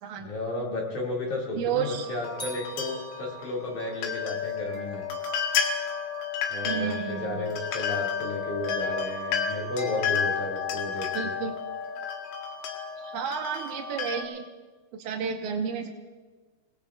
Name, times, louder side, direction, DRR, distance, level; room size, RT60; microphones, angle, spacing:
voice 1, 0.2-5.0 6.5-11.3, left 2 dB, 50° left, -3 dB, 3.2 m, -33 dB
voice 2, 1.6-2.1 6.6-7.5 11.1-11.5 13.0-14.5 14.9-15.9, right 7 dB, 85° right, 3 dB, 1.7 m, -31 dB
sound 1, 1.8-14.2, left 6 dB, 85° left, 3.7 m, -32 dB
sound 2, 2.4-3.8, equal, 5° left, 2.4 m, -43 dB
29.5 x 18.5 x 2.4 m, 1.3 s
omnidirectional pair, 5.0 m